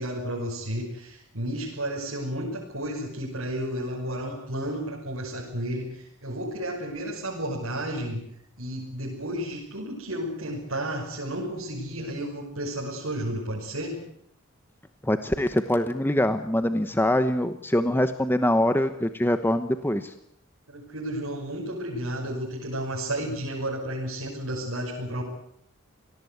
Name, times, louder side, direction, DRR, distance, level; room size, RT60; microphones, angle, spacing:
voice 1, 0.0-8.2 8.6-14.0 20.7-25.2, right 1 dB, 70° right, -3 dB, 5.9 m, -32 dB
voice 2, 15.0-20.1, left 1 dB, 10° left, 9 dB, 1.0 m, -24 dB
27.5 x 18.5 x 8.0 m, 0.72 s
head